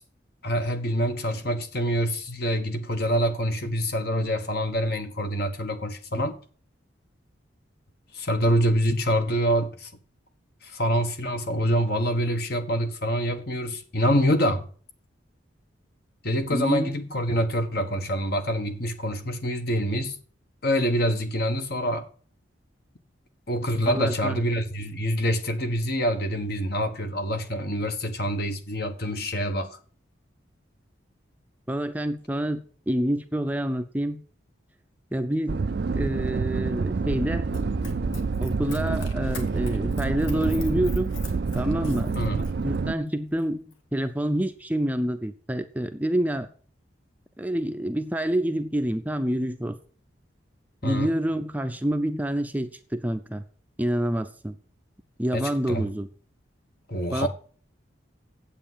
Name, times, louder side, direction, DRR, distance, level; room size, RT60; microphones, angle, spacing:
voice 1, 0.4-6.4 8.1-9.9 10.6-14.7 16.2-20.2 20.6-22.1 23.5-29.8 42.2-42.5 50.8-51.1 55.3-55.9 56.9-57.3, equal, 50° left, 1.4 m, -26 dB
voice 2, 16.5-17.4 23.9-24.4 31.7-34.2 35.1-37.6 38.4-41.1 41.5-42.2 42.6-46.5 47.4-49.8 50.8-53.4 53.8-54.6 55.2-56.1 57.1-57.3, right 1 dB, 10° right, 0.6 m, -27 dB
sound 1, 35.5-42.9, right 4 dB, 55° right, 0.4 m, -27 dB
Run, 37.5-42.8 43.3-43.4, left 2 dB, 85° left, 1.9 m, -41 dB
8.9 x 8.2 x 7.4 m
head